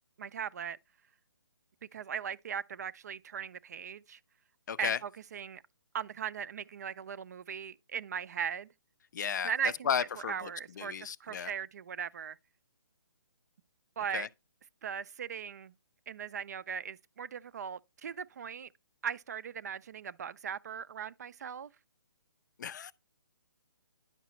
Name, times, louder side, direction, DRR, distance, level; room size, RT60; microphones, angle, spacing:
voice 1, 0.2-0.8 1.9-4.2 4.8-5.6 5.9-8.7 9.4-9.9 10.2-12.4 14.0-14.3 14.8-15.7 16.1-18.7 19.0-21.7, right 7 dB, 45° right, 0.4 m, -38 dB
voice 2, 4.7-5.0 9.1-9.5 9.9-10.5 10.8-11.5 14.1-14.3 22.6-22.9, left 7 dB, 50° left, 0.5 m, -33 dB
10.0 x 5.8 x 3.1 m
hypercardioid pair, 160°, 13 cm